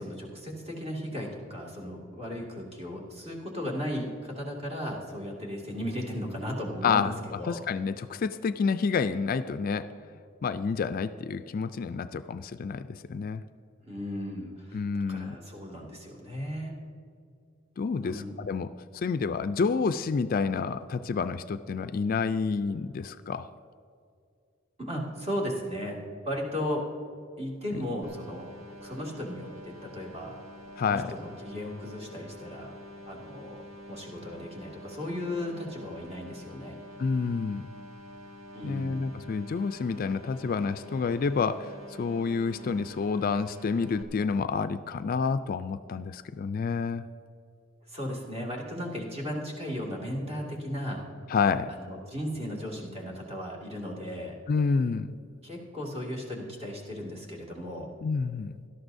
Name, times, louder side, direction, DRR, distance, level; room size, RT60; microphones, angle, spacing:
voice 1, 0.0-7.6 13.8-14.8 15.1-16.7 18.0-18.3 24.8-26.0 26.2-26.8 27.4-28.5 28.8-30.3 30.8-32.7 33.1-33.6 33.8-36.7 38.5-39.1 47.9-51.1 51.7-54.4 55.4-57.9, equal, 30° right, -2 dB, 2.1 m, -36 dB
voice 2, 6.8-9.9 10.4-13.4 14.7-15.4 17.8-23.5 27.7-27.8 30.8-31.1 37.0-37.6 38.6-47.1 51.3-51.7 54.5-55.1 58.0-58.5, left 5 dB, 45° left, 11 dB, 0.3 m, -29 dB
sound 1, 28.0-44.0, equal, 90° right, 1.1 m, -47 dB
17.5 x 12.5 x 2.6 m, 2.4 s
head